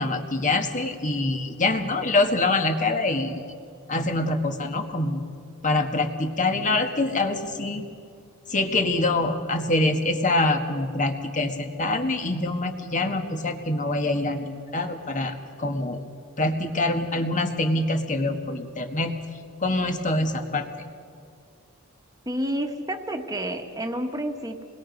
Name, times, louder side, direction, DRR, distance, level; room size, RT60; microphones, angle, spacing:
voice 1, 0.0-3.4 3.9-5.2 5.6-7.8 8.5-16.0 16.4-19.1 19.6-20.9, left 2 dB, 35° left, 5 dB, 1.6 m, -25 dB
voice 2, 22.2-24.7, right 1 dB, 15° right, 5 dB, 1.6 m, -29 dB
27.0 x 21.0 x 5.3 m, 2.3 s
head